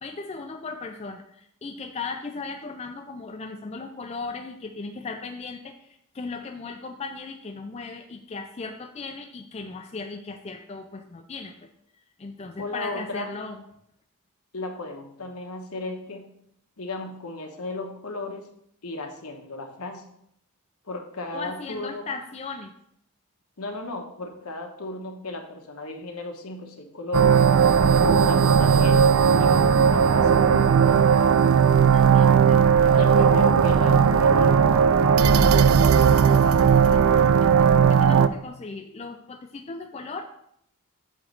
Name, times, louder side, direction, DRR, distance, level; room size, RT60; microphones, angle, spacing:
voice 1, 0.0-11.7 12.2-13.6 21.3-22.7 31.9-33.4 36.1-40.2, left 4 dB, 30° left, 5 dB, 0.4 m, -37 dB
voice 2, 12.6-13.3 14.5-16.3 16.8-18.5 18.8-20.1 20.8-22.1 23.6-27.4 28.0-30.3 30.8-31.1 32.9-35.0, left 2 dB, 75° left, 4 dB, 1.1 m, -35 dB
sound 1, 27.1-38.3, right 6 dB, 65° right, 0.3 m, -17 dB
8.4 x 3.1 x 6.4 m, 0.73 s
head